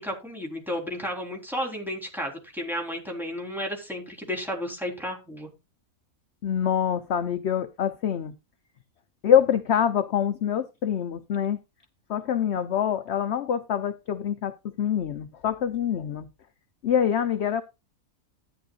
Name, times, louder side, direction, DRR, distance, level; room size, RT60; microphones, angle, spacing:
voice 1, 0.0-5.5, equal, ahead, 3.8 m, -33 dB
voice 2, 6.4-8.3 9.2-11.6 12.1-16.3 16.8-17.6, left 9 dB, 60° left, 0.9 m, -25 dB
13.0 x 9.9 x 2.4 m
omnidirectional pair, 1.4 m